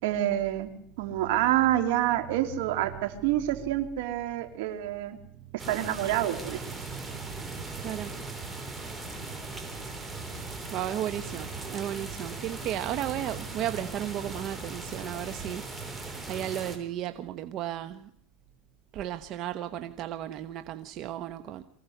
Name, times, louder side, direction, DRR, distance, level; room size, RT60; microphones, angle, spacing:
voice 1, 0.0-0.7 1.0-5.2 5.7-6.8, right 13 dB, 80° right, 7 dB, 3.2 m, -27 dB
sound 1, 5.6-16.8, right 3 dB, 10° right, 3.7 m, -39 dB
voice 2, 6.7-8.4 10.7-18.1 18.9-21.6, right 11 dB, 45° right, 10 dB, 1.0 m, -35 dB
23.5 x 16.0 x 8.0 m, 0.73 s
supercardioid pair, 140°, 0 cm